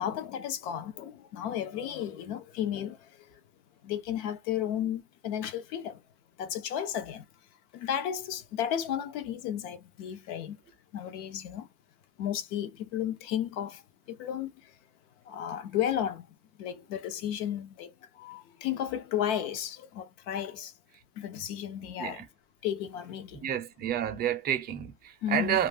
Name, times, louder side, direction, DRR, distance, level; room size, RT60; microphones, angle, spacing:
voice 1, 0.0-3.0 3.8-6.0 6.4-7.2 7.7-10.6 10.9-11.7 12.2-13.8 14.1-14.5 15.3-16.2 16.6-17.9 18.2-20.7 21.2-22.2 22.6-23.5 25.2-25.6, left 10 dB, 80° left, 0.7 m, -33 dB
voice 2, 23.4-25.7, right 10 dB, 25° right, 0.4 m, -30 dB
2.3 x 2.1 x 3.2 m
cardioid pair, 165°, 36 cm